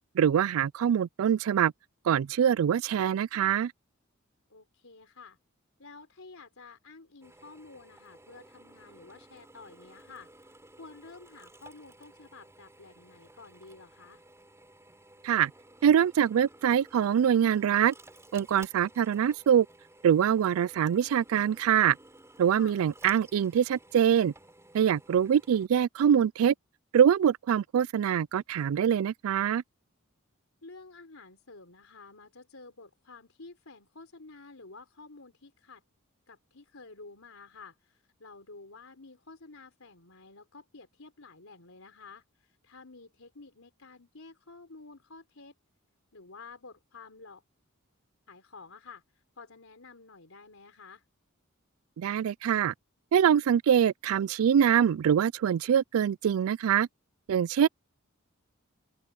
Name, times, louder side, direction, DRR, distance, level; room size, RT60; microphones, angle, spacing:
voice 1, 0.2-1.7 2.1-3.7 15.2-15.5 15.8-17.9 18.3-19.7 20.0-22.0 22.4-24.3 24.7-26.5 26.9-29.6 52.0-52.7 53.1-56.9 57.3-57.7, right 8 dB, 80° right, 0.3 m, -24 dB
voice 2, 4.5-5.4 5.8-14.2 22.5-22.8 30.6-35.8 36.3-45.5 46.1-47.4 48.3-51.0, left 3 dB, 80° left, 3.9 m, -51 dB
Drill, 7.2-25.7, right 1 dB, 15° right, 5.2 m, -55 dB
open air
head